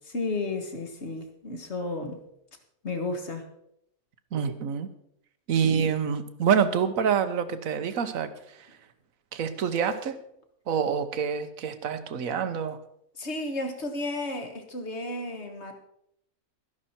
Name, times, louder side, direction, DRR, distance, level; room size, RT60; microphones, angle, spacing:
voice 1, 0.1-2.2 2.8-3.4 5.6-5.9 13.2-15.7, left 2 dB, 45° left, 5 dB, 1.8 m, -33 dB
voice 2, 4.3-4.9 5.5-8.3 9.3-10.2 10.7-12.8, right 7 dB, 60° right, 11 dB, 1.3 m, -26 dB
13.0 x 11.0 x 4.4 m, 0.75 s
omnidirectional pair, 1.7 m